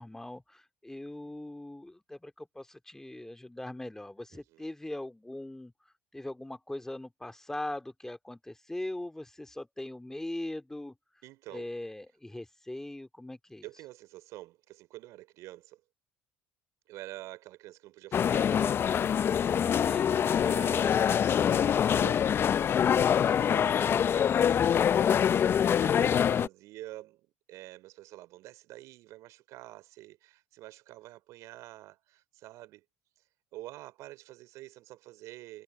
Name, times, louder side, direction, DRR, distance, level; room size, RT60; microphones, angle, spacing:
voice 1, 0.0-5.7 6.1-10.9 11.5-13.7 19.6-20.1, left 1 dB, 10° left, 2.7 m, -40 dB
voice 2, 4.3-4.7 11.2-11.7 13.6-15.8 16.9-18.9 20.4-32.8 33.5-35.6, right 17 dB, 60° right, 3.8 m, -48 dB
sound 1, 18.1-26.5, left 8 dB, 40° left, 0.9 m, -25 dB
hypercardioid pair, 65°, 6 cm